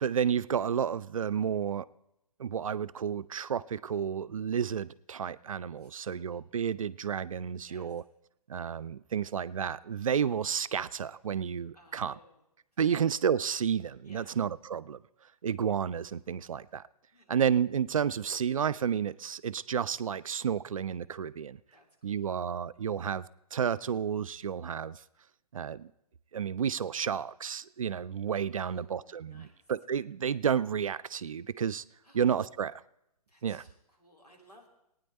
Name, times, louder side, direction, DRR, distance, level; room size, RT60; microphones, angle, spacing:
voice 1, 0.0-1.9 2.4-8.0 8.5-12.2 12.8-15.0 15.4-16.8 17.3-21.6 22.0-23.3 23.5-25.0 25.5-25.9 26.3-31.8 32.1-32.8 33.4-33.6, right 7 dB, 60° right, 0.5 m, -31 dB
voice 2, 5.8-6.2 7.6-8.0 11.7-12.4 12.9-13.0 14.0-14.3 17.1-17.3 21.7-22.3 28.5-29.6 32.0-32.2 33.3-34.7, equal, 90° left, 3.4 m, -59 dB
19.0 x 9.4 x 4.2 m
figure-of-eight pair, 125°, 19 cm